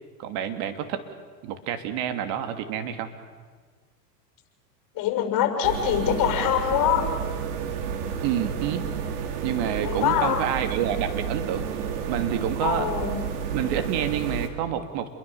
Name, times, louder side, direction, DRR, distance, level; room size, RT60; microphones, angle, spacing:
voice 1, 0.2-1.0 1.4-3.1 8.2-8.9 9.4-11.7 12.1-12.9 13.5-15.1, right 9 dB, 50° right, 8 dB, 2.9 m, -28 dB
voice 2, 4.9-7.1 9.8-10.5 12.6-13.2, left 10 dB, 40° left, 3 dB, 6.1 m, -24 dB
sound 1, 5.6-14.5, right 7 dB, 70° right, 3.3 m, -31 dB
29.0 x 22.5 x 7.2 m, 1.5 s
hypercardioid pair, 105°, 49 cm